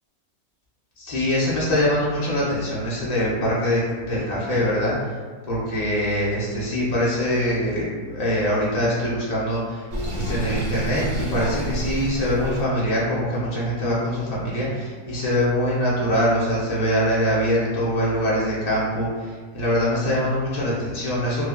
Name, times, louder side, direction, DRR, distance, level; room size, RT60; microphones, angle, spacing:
voice 1, 1.0-5.1 5.4-9.9 10.1-21.5, equal, 70° left, -7 dB, 0.3 m, -23 dB
Sink (filling or washing), 9.9-12.6, equal, 50° right, 0.9 m, -29 dB
3.1 x 2.4 x 2.2 m, 1.5 s
omnidirectional pair, 1.7 m